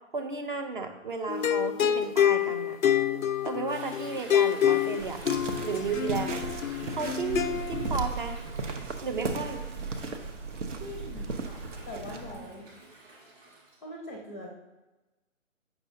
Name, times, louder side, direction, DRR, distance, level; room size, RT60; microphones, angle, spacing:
voice 1, 0.1-2.8 3.4-5.2 5.6-6.4 6.9-8.4 9.0-9.6, right 5 dB, 40° right, 6 dB, 0.6 m, -33 dB
sound 1, 1.3-8.0, left 10 dB, 85° left, 0.5 m, -27 dB
Toilet flush / Drip / Trickle dribble, 3.7-13.8, right 2 dB, 15° right, 1.0 m, -49 dB
sound 2, 5.0-12.4, right 4 dB, 65° right, 0.9 m, -36 dB
voice 2, 10.8-12.7 13.8-14.5, left 1 dB, 10° left, -1 dB, 0.5 m, -42 dB
7.8 x 5.7 x 2.6 m, 1.1 s
figure-of-eight pair, 140°, 39 cm